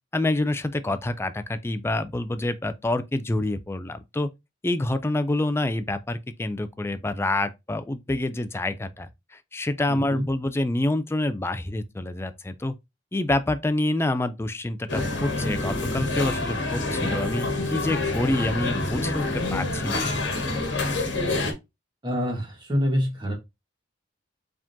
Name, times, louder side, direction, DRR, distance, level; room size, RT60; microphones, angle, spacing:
voice 1, 0.1-4.3 4.6-12.7 13.1-20.0, left 2 dB, 15° left, 0.4 m, -27 dB
voice 2, 9.9-10.3 22.0-23.3, equal, 25° right, 1.6 m, -26 dB
sound 1, 14.9-21.5, left 2 dB, 65° left, 1.3 m, -27 dB
4.8 x 3.7 x 2.7 m
head